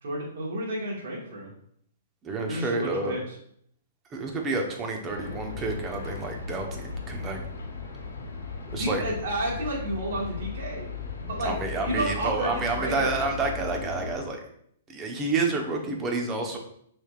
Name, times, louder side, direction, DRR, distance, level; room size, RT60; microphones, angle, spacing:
voice 1, 0.0-1.5 2.5-3.3 8.7-10.9 11.2-11.5 11.8-13.2, right 1 dB, 60° right, -4 dB, 1.6 m, -31 dB
voice 2, 2.2-3.2 4.1-7.4 8.7-9.0 11.4-14.4 14.9-16.6, right 3 dB, 25° right, 2 dB, 1.0 m, -29 dB
sound 1, 5.1-14.2, left 5 dB, 85° left, 1.1 m, -37 dB
6.2 x 3.5 x 2.4 m, 0.68 s
hypercardioid pair, 125°, 0 cm